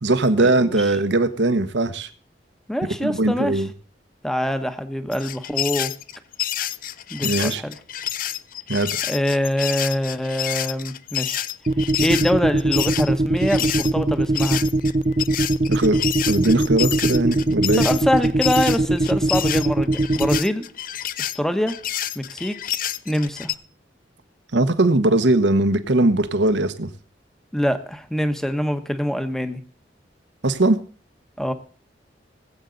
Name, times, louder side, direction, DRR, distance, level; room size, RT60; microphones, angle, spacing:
voice 1, 0.0-2.1 3.0-3.7 7.2-7.6 8.7-8.9 15.7-16.0 16.3-17.8 24.5-26.9 30.4-30.8, right 2 dB, 80° right, 11 dB, 1.1 m, -20 dB
voice 2, 2.7-3.7 4.2-5.9 7.1-7.8 9.1-11.4 12.0-14.6 17.8-20.6 21.2-21.7 22.1-22.5 23.1-23.5 27.5-29.6 31.4-31.5, equal, 5° left, 9 dB, 1.0 m, -24 dB
sound 1, 5.1-13.9 14.3-23.6, left 12 dB, 50° left, 0.5 m, -28 dB
sound 2, 11.7-20.4, right 2 dB, 35° right, 0.5 m, -20 dB
20.0 x 8.1 x 3.9 m, 0.41 s
head